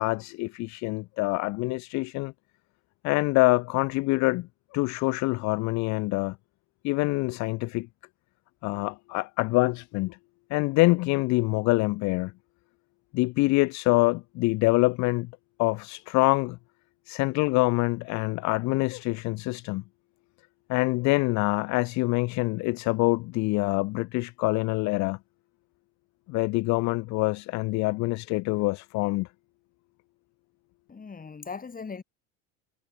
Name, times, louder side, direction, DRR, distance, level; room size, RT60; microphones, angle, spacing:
voice 1, 0.0-2.3 3.0-6.4 6.8-7.9 8.6-10.2 10.5-12.3 13.1-15.3 15.6-16.6 17.1-19.8 20.7-25.2 26.3-29.3, left 23 dB, 45° left, 0.4 m, -25 dB
voice 2, 30.9-32.0, left 5 dB, 20° left, 3.1 m, -39 dB
supercardioid pair, 95°, 41 cm